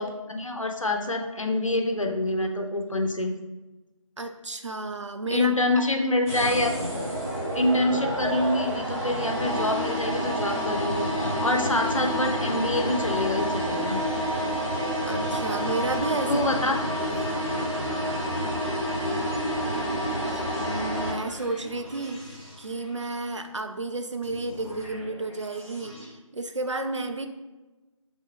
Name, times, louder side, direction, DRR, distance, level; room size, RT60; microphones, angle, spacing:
voice 1, 0.0-3.3 5.3-6.7 7.5-14.0 16.3-16.8, left 2 dB, 65° left, 4 dB, 0.7 m, -26 dB
voice 2, 4.2-5.5 15.1-16.4 16.9-17.5 20.2-22.2 22.6-27.3, right 2 dB, 60° right, 7 dB, 0.5 m, -32 dB
sound 1, 6.3-21.1, equal, 30° right, 1.1 m, -28 dB
sound 2, 20.5-23.5 24.2-26.1, left 1 dB, 15° left, 0.7 m, -45 dB
3.7 x 3.3 x 4.1 m, 1.1 s
figure-of-eight pair, 165°, 18 cm